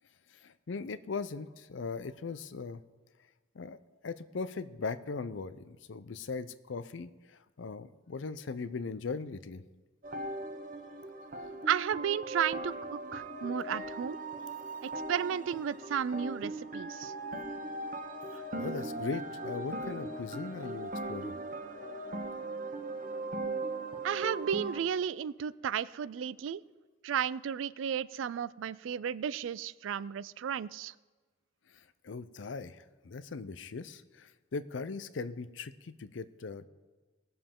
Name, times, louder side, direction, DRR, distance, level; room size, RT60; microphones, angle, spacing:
voice 1, 0.3-2.8 3.5-3.8 4.0-9.6 11.4-11.5 18.3-21.4 31.7-36.7, left 4 dB, 80° left, 14 dB, 0.5 m, -39 dB
sound 1, 10.0-24.8, right 2 dB, 45° right, 0.9 m, -39 dB
voice 2, 11.7-14.2 14.8-17.1 24.0-26.6 27.0-30.9, right 8 dB, 85° right, 19 dB, 0.3 m, -33 dB
18.5 x 6.9 x 3.7 m, 1.3 s
head